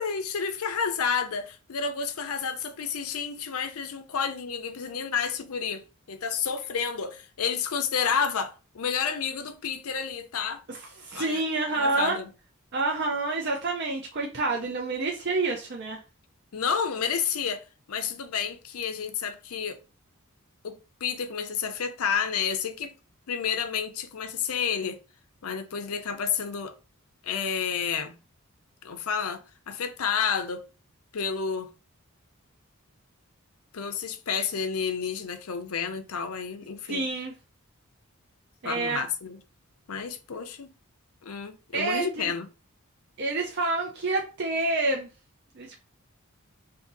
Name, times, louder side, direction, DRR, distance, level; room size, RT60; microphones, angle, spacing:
voice 1, 0.0-10.6 11.2-11.4 11.7-12.3 16.5-19.8 20.6-22.9 23.3-25.0 25.4-26.7 27.2-28.2 28.8-30.6 31.1-31.7 33.7-37.0 38.6-39.4 39.9-40.7 41.2-42.5, left 6 dB, 80° left, 0.6 m, -30 dB
voice 2, 10.7-12.2 12.7-16.0 36.9-37.3 38.6-39.0 41.7-42.3 43.2-45.1 45.6-45.8, right 3 dB, 50° right, 0.6 m, -28 dB
2.7 x 2.6 x 3.9 m
head